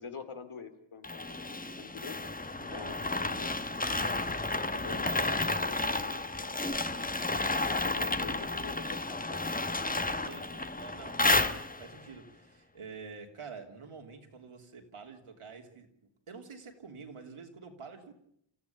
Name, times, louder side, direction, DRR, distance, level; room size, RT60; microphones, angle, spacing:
voice 1, 0.0-2.4 2.6-3.5 4.6-6.9 7.6-9.4, left 5 dB, 75° left, 8 dB, 2.8 m, -46 dB
sound 1, 1.0-12.0, left 2 dB, 15° left, 1.0 m, -32 dB
voice 2, 2.7-3.0 10.1-15.9 16.3-18.1, right 5 dB, 90° right, 3 dB, 3.3 m, -48 dB
29.5 x 15.0 x 8.6 m, 0.74 s
wide cardioid pair, 115°, 50 cm